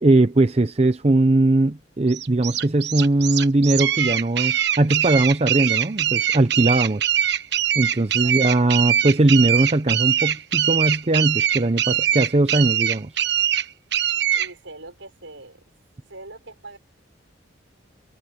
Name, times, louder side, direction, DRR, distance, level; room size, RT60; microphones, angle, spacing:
voice 1, 0.0-7.1 7.8-13.1, right 2 dB, 30° right, 0.6 m, -20 dB
sound 1, 2.1-14.5, right 10 dB, 55° right, 1.1 m, -22 dB
voice 2, 14.3-15.6 16.1-16.8, right 2 dB, 75° right, 5.9 m, -41 dB
head